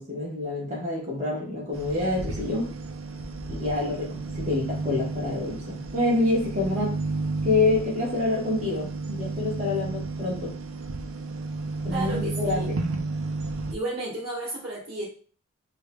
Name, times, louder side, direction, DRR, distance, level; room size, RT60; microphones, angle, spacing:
voice 1, 0.0-2.7 3.5-7.0 7.4-10.5 11.8-12.8, left 2 dB, 35° right, -5 dB, 1.2 m, -27 dB
sound 1, 1.7-13.7, right 3 dB, 85° right, 0.5 m, -32 dB
voice 2, 11.9-12.7 13.7-15.0, right 2 dB, 50° right, -9 dB, 1.3 m, -33 dB
4.7 x 2.7 x 2.2 m, 0.43 s
head